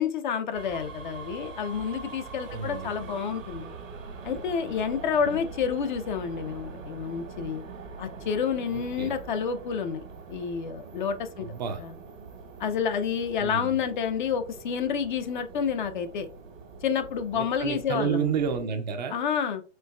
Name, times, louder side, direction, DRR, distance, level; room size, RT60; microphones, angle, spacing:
voice 1, 0.0-3.7 4.2-7.6 8.0-10.0 10.3-11.5 12.6-16.3 16.8-18.3 19.1-19.6, left 7 dB, 40° left, 0.5 m, -29 dB
sound 1, 0.5-18.6, right 4 dB, 90° right, 1.5 m, -43 dB
voice 2, 2.5-3.0 5.2-5.4 8.7-9.2 11.4-11.9 13.4-13.8 17.3-19.2, right 6 dB, 35° right, 0.4 m, -31 dB
4.5 x 3.0 x 2.3 m
hypercardioid pair, 150°, 38 cm